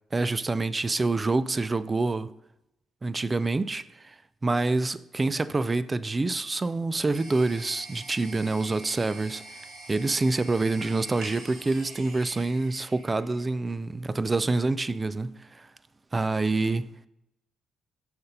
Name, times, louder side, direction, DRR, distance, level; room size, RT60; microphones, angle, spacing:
voice 1, 0.1-2.3 3.0-4.1 4.4-9.4 9.9-15.7 16.1-16.9, right 3 dB, 25° right, 0.3 m, -27 dB
sound 1, 7.1-13.7, right 2 dB, 75° right, 2.1 m, -45 dB
6.6 x 4.3 x 5.3 m
cardioid pair, 90°, 0 cm